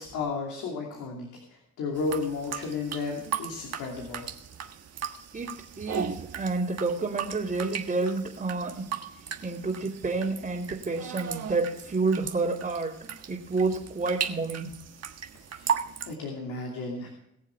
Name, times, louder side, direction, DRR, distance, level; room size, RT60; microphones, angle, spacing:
voice 1, 0.0-4.3 15.3-15.7 16.1-17.1, left 4 dB, 85° left, 0 dB, 2.8 m, -33 dB
sound 1, 2.0-16.1, right 7 dB, 55° right, 1.5 m, -37 dB
voice 2, 5.3-8.9 9.4-14.7, right 3 dB, 30° right, -5 dB, 2.7 m, -29 dB
22.0 x 7.3 x 3.6 m, 0.80 s
cardioid pair, 90°, 30 cm